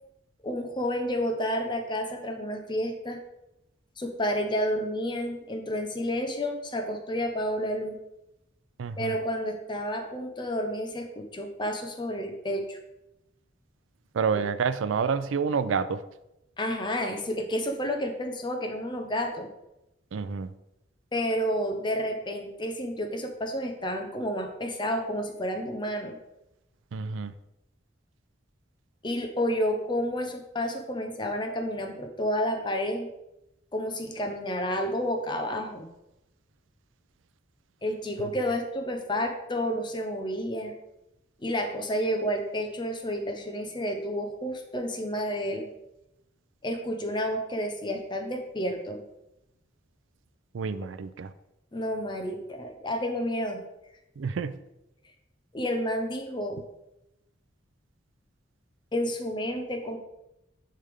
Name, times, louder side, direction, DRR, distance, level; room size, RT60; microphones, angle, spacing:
voice 1, 0.4-3.2 4.0-8.0 9.0-12.8 14.3-14.4 16.6-19.5 21.1-26.2 29.0-33.1 33.7-35.9 37.8-40.8 41.4-45.7 46.6-49.0 51.7-53.6 55.5-56.6 58.9-60.0, equal, 25° left, 4 dB, 0.7 m, -30 dB
voice 2, 8.8-9.1 14.1-16.0 20.1-20.5 26.9-27.3 50.5-51.3 54.2-54.6, right 5 dB, 90° right, 13 dB, 0.4 m, -28 dB
9.9 x 3.4 x 3.5 m, 0.90 s
head